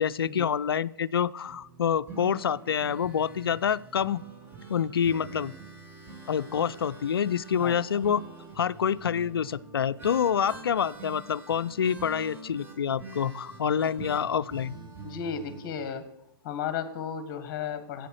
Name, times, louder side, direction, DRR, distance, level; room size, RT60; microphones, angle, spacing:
voice 1, 0.0-4.2 4.7-5.5 6.3-8.2 8.6-14.7, left 8 dB, 80° left, 16 dB, 0.4 m, -27 dB
sound 1, 1.5-15.9, right 3 dB, 15° right, 1.5 m, -45 dB
voice 2, 15.0-16.0 16.4-18.1, left 7 dB, 35° left, 10 dB, 1.3 m, -34 dB
8.2 x 7.7 x 6.3 m, 0.79 s
hypercardioid pair, 120°, 12 cm